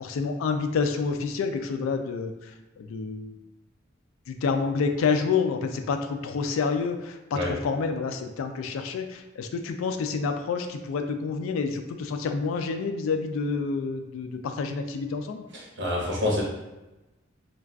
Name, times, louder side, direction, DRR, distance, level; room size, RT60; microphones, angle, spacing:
voice 1, 0.0-2.5 2.8-3.3 4.3-15.4, left 5 dB, 80° left, 6 dB, 0.3 m, -28 dB
voice 2, 15.5-16.4, left 2 dB, 60° right, -3 dB, 0.8 m, -27 dB
2.3 x 2.3 x 3.3 m, 1.0 s
head